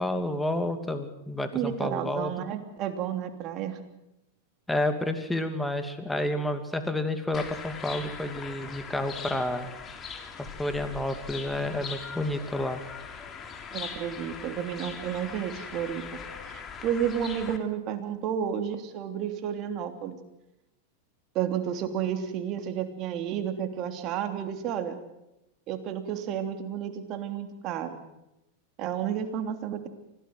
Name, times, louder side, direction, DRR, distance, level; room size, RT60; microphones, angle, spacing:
voice 1, 0.0-2.3 4.7-9.7 10.4-12.8, left 1 dB, 5° left, 8 dB, 2.5 m, -30 dB
voice 2, 1.5-3.8 13.7-16.2 16.4-20.2 21.3-25.0 25.7-28.0 28.8-29.9, right 9 dB, 45° right, 6 dB, 3.1 m, -31 dB
sound 1, 7.3-17.6, left 6 dB, 30° left, 3.2 m, -41 dB
24.5 x 17.0 x 7.9 m, 0.90 s
hypercardioid pair, 115°, 0 cm